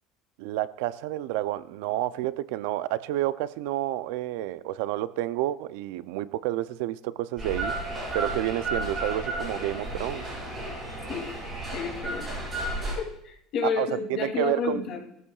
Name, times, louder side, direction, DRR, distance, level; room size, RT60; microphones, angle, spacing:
voice 1, 0.4-7.8 8.1-10.3 13.6-14.8, right 14 dB, 80° right, 0.5 m, -30 dB
sound 1, 7.4-12.9, right 2 dB, 20° right, 6.4 m, -33 dB
voice 2, 11.7-12.2 12.9-15.0, left 6 dB, 45° left, 2.6 m, -30 dB
20.0 x 14.0 x 2.4 m
cardioid pair, 175°, 0 cm